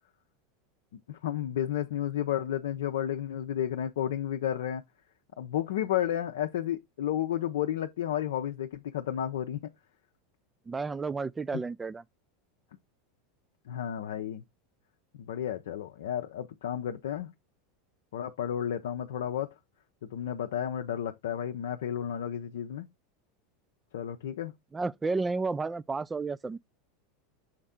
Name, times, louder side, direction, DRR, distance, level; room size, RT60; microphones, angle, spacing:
voice 1, 1.1-4.8 5.4-9.7 13.7-14.4 15.1-17.3 18.1-19.5 20.0-22.9 23.9-24.5, left 10 dB, 65° left, 0.6 m, -32 dB
voice 2, 10.7-12.0 24.7-26.6, right 4 dB, 15° right, 0.3 m, -32 dB
6.5 x 4.3 x 3.5 m
figure-of-eight pair, 85°, 0 cm